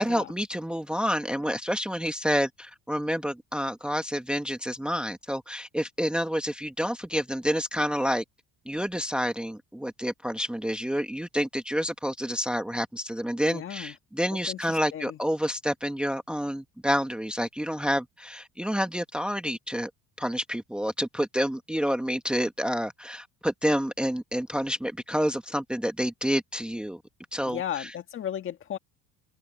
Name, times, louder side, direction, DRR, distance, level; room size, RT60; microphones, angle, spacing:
voice 1, 0.0-8.2 8.7-19.9 20.2-27.0 27.3-27.9, equal, 5° right, 1.2 m, -29 dB
voice 2, 13.4-13.9 14.3-15.2 27.4-28.8, left 10 dB, 35° left, 1.7 m, -35 dB
open air
cardioid pair, 165°, 36 cm